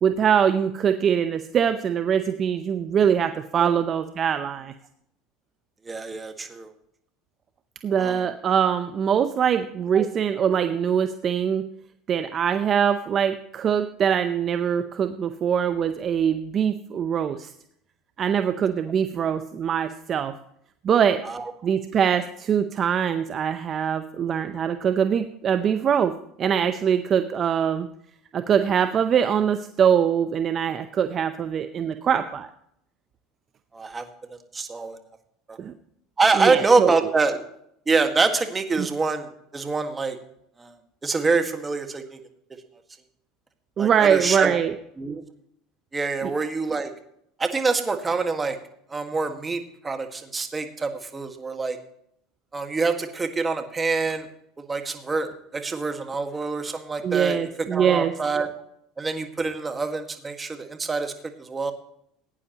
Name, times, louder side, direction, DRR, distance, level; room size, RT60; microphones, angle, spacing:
voice 1, 0.0-4.7 7.8-11.6 12.1-17.5 18.2-20.3 20.8-21.2 21.6-27.9 28.3-32.5 35.6-35.7 36.4-36.9 38.8-38.9 43.8-44.7 46.2-46.3 57.0-58.1, right 8 dB, 40° right, 9 dB, 0.7 m, -23 dB
voice 2, 5.8-6.7 8.0-8.3 9.9-10.1 21.2-21.5 33.7-35.0 35.5-35.6 36.2-37.4 37.9-40.2 40.6-40.7 41.0-42.2 43.8-44.6 45.0-45.2 45.9-46.9 47.4-48.6 48.9-51.8 52.5-54.3 54.6-57.4 57.7-58.5 59.0-61.7, right 4 dB, 20° right, 6 dB, 1.7 m, -25 dB
17.0 x 9.4 x 3.0 m, 0.71 s
hypercardioid pair, 90°, 0 cm